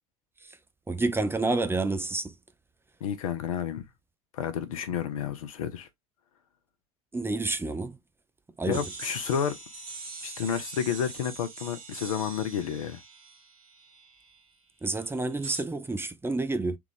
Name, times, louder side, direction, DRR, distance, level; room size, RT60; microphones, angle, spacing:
voice 1, 0.9-2.3 7.1-7.9 8.6-8.8 14.8-16.8, right 2 dB, 15° right, 0.6 m, -29 dB
voice 2, 3.0-3.8 4.3-5.9 8.7-9.6 10.2-13.0, left 8 dB, 80° left, 0.7 m, -30 dB
sound 1, 8.7-14.4 15.4-15.6, right 3 dB, 90° right, 1.0 m, -42 dB
3.5 x 2.4 x 3.2 m
hypercardioid pair, 65°, 18 cm